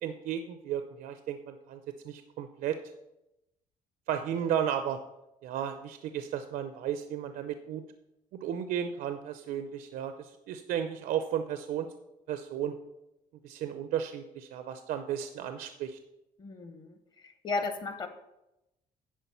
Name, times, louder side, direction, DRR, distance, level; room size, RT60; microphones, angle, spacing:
voice 1, 0.0-2.8 4.1-5.0 5.4-7.8 8.4-11.9 12.3-12.8 13.4-16.0, right 9 dB, 70° right, 8 dB, 0.6 m, -34 dB
voice 2, 16.4-17.0 17.2-18.1, left 3 dB, 30° left, 8 dB, 1.0 m, -34 dB
10.0 x 4.7 x 6.9 m, 0.91 s
cardioid pair, 165°, 15 cm